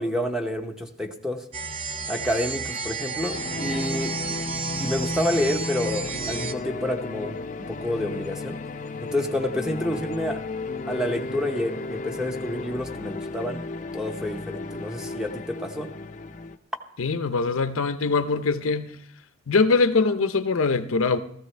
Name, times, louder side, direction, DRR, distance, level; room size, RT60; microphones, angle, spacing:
voice 1, 0.0-1.5 2.1-4.2 4.8-8.6 9.0-10.5 10.9-13.7 13.9-15.9, left 1 dB, 5° right, 0.8 m, -29 dB
sound 1, 1.5-6.5, right 5 dB, 30° right, 0.5 m, -32 dB
sound 2, 3.3-16.6, left 3 dB, 35° left, 0.6 m, -33 dB
voice 2, 17.0-19.0 19.5-21.2, left 4 dB, 80° left, 0.7 m, -22 dB
16.0 x 14.5 x 3.3 m
head